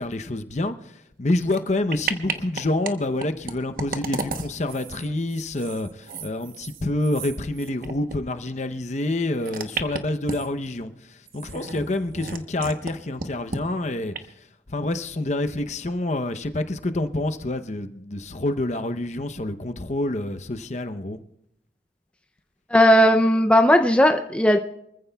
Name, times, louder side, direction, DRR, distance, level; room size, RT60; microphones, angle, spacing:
voice 1, 0.0-14.3 14.7-21.2, left 2 dB, 40° left, 0.8 m, -27 dB
sound 1, 1.4-1.6 1.9-2.9 3.2-8.2 8.4-8.5 9.4-10.7 11.3-12.9 13.2-13.6 14.1-14.2, right 4 dB, 50° right, 1.0 m, -33 dB
voice 2, 22.7-24.6, equal, 5° left, 0.5 m, -16 dB
25.0 x 14.5 x 2.3 m
head